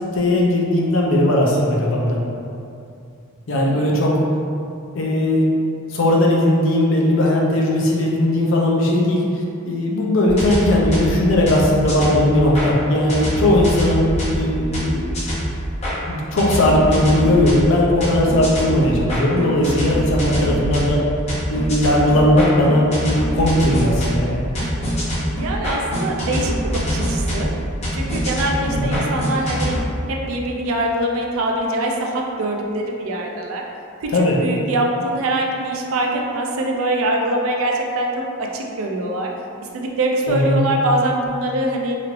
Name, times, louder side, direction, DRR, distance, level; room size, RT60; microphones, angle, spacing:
voice 1, 0.1-2.2 3.5-4.2 4.9-5.5 5.9-14.1 14.4-15.1 16.1-21.0 21.5-24.4 28.7-29.0 34.1-34.4 40.3-40.6, left 1 dB, 60° left, -3 dB, 0.5 m, -18 dB
voice 2, 3.6-3.9 24.6-24.7 25.4-27.5 27.9-29.8 30.1-33.6 34.0-38.1 38.4-39.3 39.7-42.0, right 1 dB, 70° right, 0 dB, 0.4 m, -23 dB
sound 1, 10.3-12.7 13.1-15.9 16.4-29.8, equal, 30° left, 0.8 m, -24 dB
3.0 x 3.0 x 2.5 m, 2.6 s
head